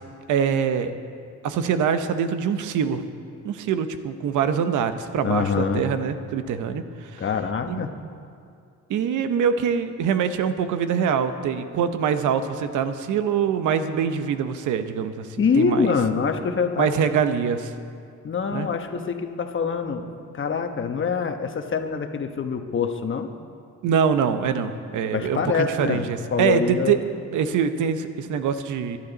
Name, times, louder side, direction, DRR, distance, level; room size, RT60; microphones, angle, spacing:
voice 1, 0.3-0.9 1.4-3.0 3.4-7.2 7.7-7.9 8.9-15.3 15.6-15.9 16.8-17.7 18.5-18.7 23.8-27.0 27.3-29.0, right 7 dB, 80° right, 10 dB, 0.9 m, -24 dB
voice 2, 5.2-5.8 7.2-7.9 15.4-16.9 18.2-20.1 20.3-23.3 25.1-27.0, left 5 dB, 40° left, 6 dB, 1.1 m, -25 dB
17.5 x 11.5 x 4.0 m, 2.4 s
cardioid pair, 90°, 30 cm